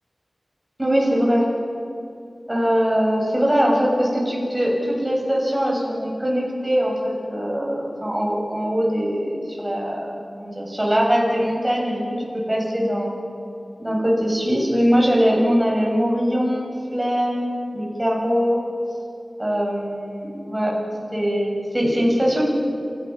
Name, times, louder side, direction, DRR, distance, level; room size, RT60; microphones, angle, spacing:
voice 1, 0.8-1.5 2.5-13.1 13.8-18.6 19.4-20.8 21.1-22.5, equal, 15° right, -2 dB, 7.0 m, -22 dB
28.0 x 17.0 x 5.7 m, 2.6 s
wide cardioid pair, 70°, 0 cm